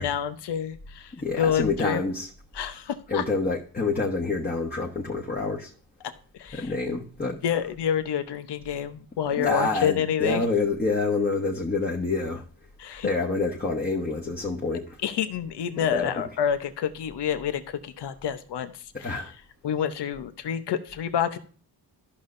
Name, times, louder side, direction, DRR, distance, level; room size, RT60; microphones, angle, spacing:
voice 1, 0.0-2.0 2.5-3.2 6.4-6.7 7.4-10.4 12.8-13.1 15.0-19.3 19.6-21.4, left 8 dB, 75° left, 0.9 m, -28 dB
voice 2, 1.1-2.3 3.1-5.7 6.5-7.4 9.4-12.4 13.0-15.0 15.9-16.2 19.0-19.3, left 3 dB, 25° left, 1.2 m, -27 dB
13.5 x 5.6 x 2.6 m
cardioid pair, 80°, 41 cm